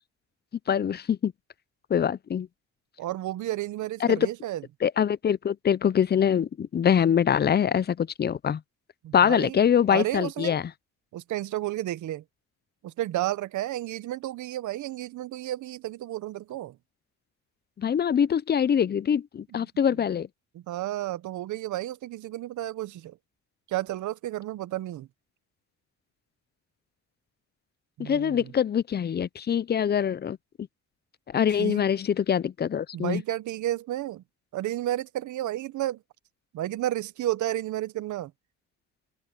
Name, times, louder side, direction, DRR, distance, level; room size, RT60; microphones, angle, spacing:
voice 1, 0.7-1.3 1.9-2.5 4.0-4.3 4.8-8.6 9.1-10.7 17.8-20.3 28.0-30.4 31.3-33.2, left 8 dB, 35° left, 0.6 m, -24 dB
voice 2, 3.0-4.6 9.0-9.6 9.9-10.6 11.1-12.2 12.8-16.8 19.5-19.6 20.5-23.2 23.7-25.1 28.0-28.5 31.6-31.8 32.9-34.2 34.5-36.0 36.5-38.3, right 14 dB, 75° right, 0.9 m, -32 dB
cardioid pair, 90°, 30 cm